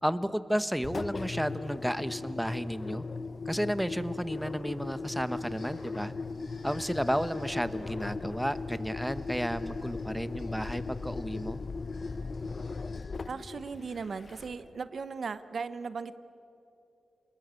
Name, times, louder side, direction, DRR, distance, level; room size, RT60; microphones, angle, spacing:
voice 1, 0.0-3.0 3.4-6.1 6.6-11.6, equal, ahead, 12 dB, 1.0 m, -32 dB
Engine, 0.8-14.8, left 4 dB, 50° left, 0.7 m, -38 dB
sound 1, 4.8-13.5, left 2 dB, 65° left, 4.9 m, -57 dB
voice 2, 13.3-16.2, right 5 dB, 60° right, 13 dB, 0.8 m, -37 dB
28.0 x 20.5 x 8.2 m, 2.9 s
cardioid pair, 65°, 0 cm